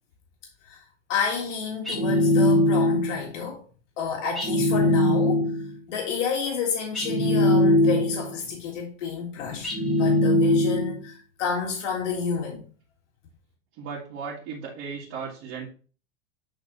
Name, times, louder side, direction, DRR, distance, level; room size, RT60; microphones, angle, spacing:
voice 1, 1.1-3.6 4.0-5.6 5.9-12.6, left 6 dB, 75° left, 2.0 m, -30 dB
sound 1, 1.8-3.2 4.3-5.7 6.9-8.3 9.6-11.0, left 1 dB, ahead, 1.2 m, -21 dB
voice 2, 13.8-15.7, right 5 dB, 40° right, 2.1 m, -36 dB
10.0 x 3.9 x 3.1 m
supercardioid pair, 165°, 37 cm